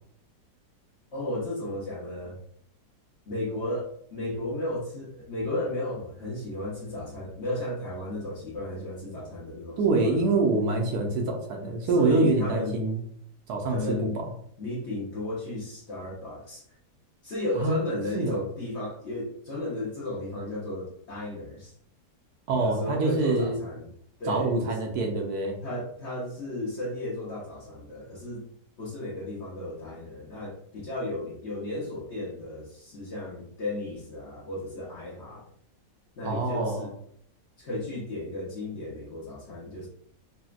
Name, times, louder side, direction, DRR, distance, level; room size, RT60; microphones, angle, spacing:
voice 1, 1.1-2.4 3.3-10.3 11.9-12.8 13.7-14.2 14.6-16.6 17.2-21.7 22.5-23.9 24.2-24.7 25.6-28.5 28.8-35.4 36.2-36.9 37.6-39.9, left 1 dB, 50° left, -5 dB, 0.9 m, -34 dB
voice 2, 9.8-13.0 13.5-14.3 17.6-17.7 18.1-18.4 22.5-23.6 24.3-25.6 36.2-36.9, right 3 dB, 70° right, 1 dB, 1.1 m, -25 dB
4.0 x 2.1 x 2.4 m, 0.65 s
omnidirectional pair, 1.8 m